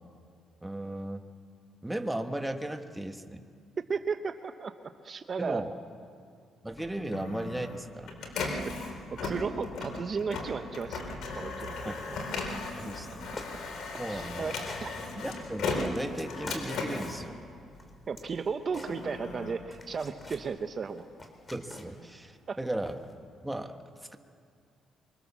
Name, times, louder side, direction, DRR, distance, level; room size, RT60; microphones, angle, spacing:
voice 1, 0.6-1.2 1.8-3.4 5.4-5.7 6.6-8.1 11.8-12.0 12.8-13.3 14.0-14.5 15.2-17.4 21.5-22.9 23.4-23.8, right 1 dB, 10° right, 5 dB, 1.6 m, -36 dB
voice 2, 3.9-5.6 8.4-8.7 9.2-12.2 14.1-14.9 18.1-21.0 22.5-22.6, right 5 dB, 45° right, 8 dB, 0.9 m, -35 dB
Printer, 6.7-18.1 18.6-20.5, left 3 dB, 75° left, 4.1 m, -37 dB
sound 1, 11.5-11.7 12.0-12.5 12.8-13.1 13.4-13.5 13.8-13.9 14.2-14.9 15.2-17.3 17.7-19.4 19.7-20.5 20.9-22.1 22.9-23.1, left 2 dB, 25° left, 3.6 m, -47 dB
24.5 x 24.5 x 7.2 m, 2.3 s
cardioid pair, 90°, 0 cm